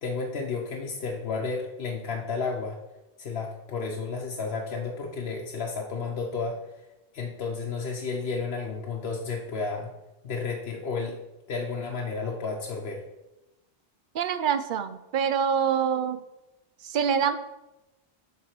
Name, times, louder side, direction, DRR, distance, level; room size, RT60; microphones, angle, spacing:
voice 1, 0.0-2.8 3.2-6.6 7.1-9.9 10.2-11.2 11.5-13.0, left 4 dB, 75° left, -1 dB, 1.1 m, -32 dB
voice 2, 14.1-16.2 16.8-17.4, right 7 dB, 60° right, 11 dB, 0.6 m, -25 dB
7.4 x 3.8 x 6.5 m, 0.97 s
omnidirectional pair, 1.0 m